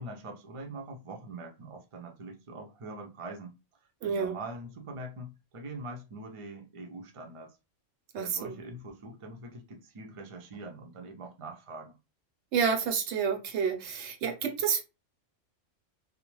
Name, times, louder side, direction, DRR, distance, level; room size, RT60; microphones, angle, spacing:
voice 1, 0.0-3.5 4.0-7.6 8.2-12.0, right 2 dB, 45° right, 0.4 m, -43 dB
voice 2, 4.0-4.4 8.1-8.6 12.5-14.8, right 6 dB, 70° right, 0.8 m, -29 dB
2.4 x 2.0 x 3.0 m
omnidirectional pair, 1.3 m